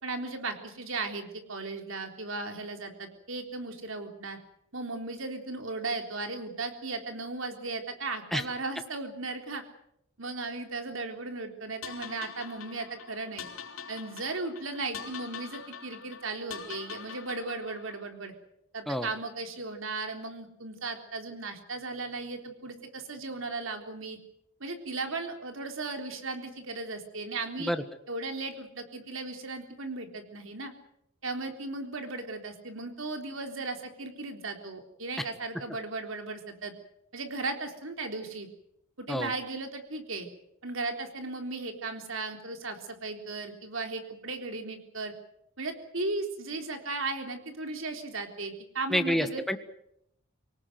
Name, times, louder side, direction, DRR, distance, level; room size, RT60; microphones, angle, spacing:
voice 1, 0.0-4.4 4.7-9.6 10.2-13.5 13.9-18.3 18.7-24.2 24.6-27.7 28.1-30.7 31.2-36.7 37.1-38.5 39.0-40.3 40.6-45.1 45.6-49.4, right 3 dB, 70° right, 5 dB, 3.8 m, -36 dB
sound 1, 11.8-18.1, left 7 dB, 85° left, 3.6 m, -44 dB
voice 2, 48.9-49.6, equal, ahead, 8 dB, 1.6 m, -28 dB
24.5 x 18.5 x 7.9 m, 0.75 s
head